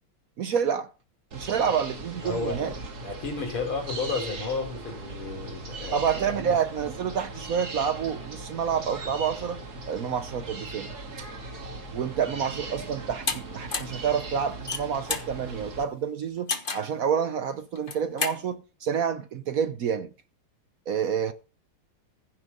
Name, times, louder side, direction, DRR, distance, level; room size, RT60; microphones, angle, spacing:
voice 1, 0.4-0.9 1.3-2.7 5.9-10.9 11.2-11.3 11.9-20.1 20.9-21.3, right 7 dB, 65° right, 0.8 m, -28 dB
sound 1, 1.3-15.8, right 2 dB, 45° right, 2.6 m, -39 dB
voice 2, 2.2-2.6 3.0-6.0 6.4-6.5, left 4 dB, 75° left, 4.3 m, -32 dB
sound 2, 13.3-13.4 13.7-14.0 14.5-15.3 16.5-16.9 17.7-18.4, left 4 dB, 30° left, 1.1 m, -30 dB
15.5 x 6.3 x 5.4 m
omnidirectional pair, 2.3 m